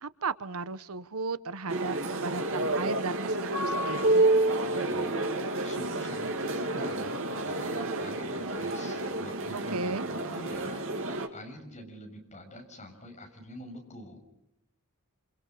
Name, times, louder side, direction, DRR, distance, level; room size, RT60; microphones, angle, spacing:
voice 1, 0.0-4.2 9.5-10.1, right 4 dB, 80° right, 15 dB, 1.0 m, -35 dB
sound 1, 1.7-11.3, right 2 dB, 65° right, 2.8 m, -29 dB
voice 2, 4.6-5.2 5.6-14.2, left 1 dB, 35° left, 2 dB, 6.6 m, -46 dB
28.0 x 28.0 x 6.6 m, 0.87 s
head